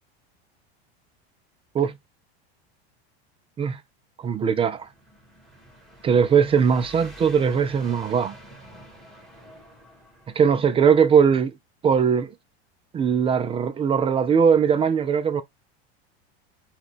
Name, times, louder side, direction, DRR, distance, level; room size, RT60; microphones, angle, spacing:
voice 1, 4.2-4.9 6.0-8.3 10.4-11.5 11.8-12.3 12.9-15.4, right 7 dB, 20° right, 0.3 m, -20 dB
sound 1, 4.5-11.2, right 1 dB, ahead, 1.6 m, -48 dB
5.7 x 2.4 x 3.4 m
supercardioid pair, 120°, 33 cm